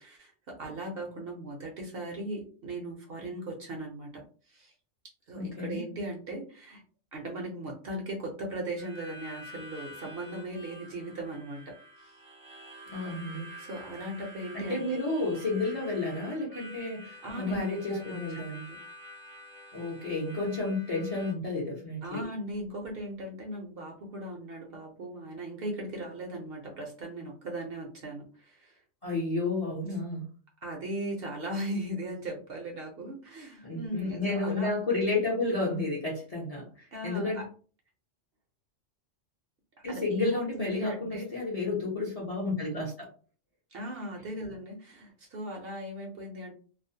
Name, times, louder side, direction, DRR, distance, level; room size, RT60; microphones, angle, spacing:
voice 1, 0.0-4.2 4.5-4.7 5.3-6.8 7.1-11.7 12.0-12.2 13.6-15.0 17.2-18.8 22.0-28.8 30.6-34.7 36.9-37.5 39.9-41.2 43.7-46.5, right 1 dB, 60° right, 1 dB, 0.7 m, -38 dB
voice 2, 5.4-5.8 12.9-13.5 14.5-18.6 19.7-22.2 29.0-30.3 33.6-37.4 39.8-43.1, left 2 dB, 40° left, -4 dB, 0.5 m, -31 dB
Harmonica, 8.8-21.3, left 1 dB, 10° right, 0.5 m, -48 dB
2.4 x 2.0 x 2.6 m, 0.40 s
omnidirectional pair, 1.3 m